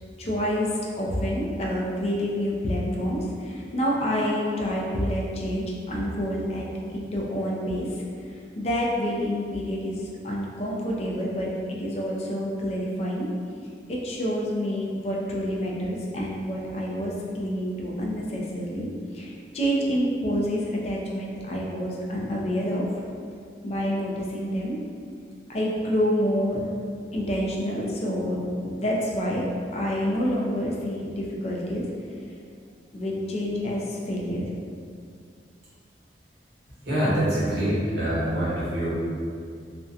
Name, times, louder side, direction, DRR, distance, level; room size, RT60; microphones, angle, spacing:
voice 1, 0.2-6.7 6.9-7.9 8.6-11.5 11.8-13.3 13.9-18.9 19.1-22.8 23.6-24.8 25.5-26.7 27.1-31.8 32.9-34.5, equal, 35° left, -3 dB, 0.4 m, -28 dB
voice 2, 36.8-38.9, right 1 dB, 65° right, -9 dB, 1.0 m, -25 dB
2.6 x 2.1 x 2.4 m, 2.3 s
head